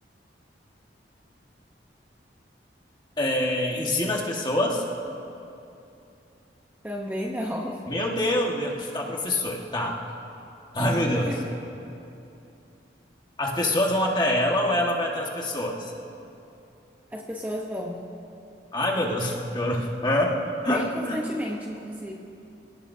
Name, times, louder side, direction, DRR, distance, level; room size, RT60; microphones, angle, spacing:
voice 1, 3.2-4.8 7.9-10.0 10.7-11.3 13.4-15.9 18.7-21.2, left 1 dB, 25° left, -1 dB, 1.7 m, -25 dB
voice 2, 6.8-7.8 11.2-11.5 17.1-18.0 20.7-22.1, equal, 10° right, -2 dB, 0.9 m, -32 dB
28.5 x 17.0 x 2.8 m, 2.8 s
head